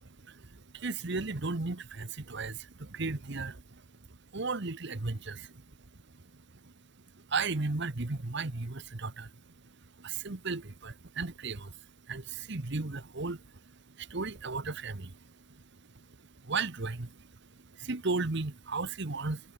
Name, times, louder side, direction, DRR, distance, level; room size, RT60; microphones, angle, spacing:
voice 1, 0.3-3.8 4.3-5.6 7.3-9.3 10.0-11.7 12.1-13.4 14.0-15.2 16.4-17.2 17.8-19.5, right 3 dB, 65° right, 1.3 m, -35 dB
head